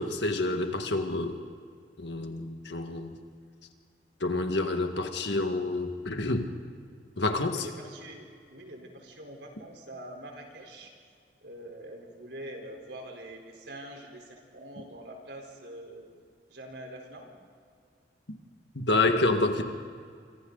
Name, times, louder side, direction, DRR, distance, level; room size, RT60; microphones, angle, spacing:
voice 1, 0.0-1.4 2.0-3.2 4.2-6.5 7.2-7.7 18.8-19.6, left 2 dB, 80° left, 6 dB, 1.8 m, -28 dB
voice 2, 7.5-10.9 11.4-16.1 16.5-17.3, right 1 dB, 80° right, 1 dB, 4.2 m, -44 dB
26.5 x 25.5 x 4.0 m, 2.1 s
head